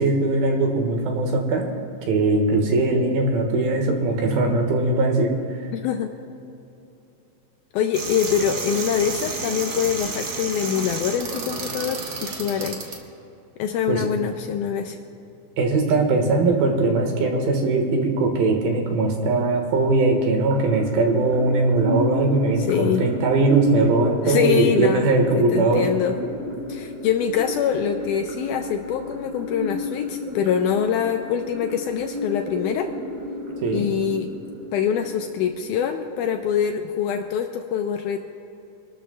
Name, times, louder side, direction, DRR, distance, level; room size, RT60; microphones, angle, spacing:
voice 1, 0.0-1.6 2.1-5.3 13.9-14.1 15.6-25.8 33.6-33.9, right 3 dB, 90° right, 2 dB, 3.3 m, -20 dB
voice 2, 5.7-6.1 7.7-12.8 13.6-15.0 22.7-23.0 24.3-25.1 25.4-26.2 26.7-32.9 33.7-34.3 34.7-38.2, left 8 dB, 80° left, 5 dB, 1.9 m, -24 dB
sound 1, 7.9-13.0, right 3 dB, 70° right, 1.1 m, -31 dB
sound 2, 20.5-36.5, left 1 dB, 45° right, 3.1 m, -33 dB
25.0 x 13.0 x 2.3 m, 2.8 s
omnidirectional pair, 4.1 m